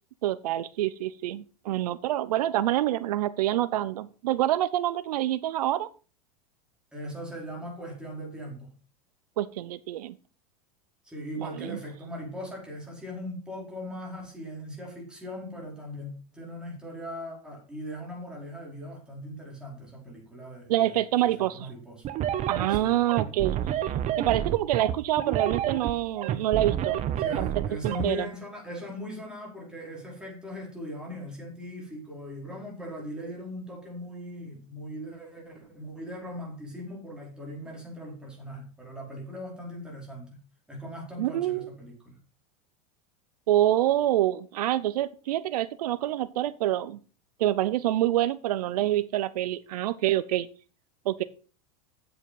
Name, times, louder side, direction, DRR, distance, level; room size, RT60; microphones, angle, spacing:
voice 1, 0.2-5.9 9.4-10.2 11.4-11.8 20.7-21.7 22.5-23.6 24.2-27.1 27.4-27.5 27.8-28.2 41.2-41.7 43.5-47.0 47.4-50.5 51.1-51.2, right 13 dB, 85° right, 0.6 m, -26 dB
voice 2, 6.9-8.7 11.0-22.0 22.7-22.9 27.2-40.4 40.7-42.2, equal, 5° right, 4.9 m, -39 dB
sound 1, 22.0-28.1, right 10 dB, 35° right, 1.1 m, -29 dB
8.0 x 7.8 x 5.6 m
supercardioid pair, 125°, 19 cm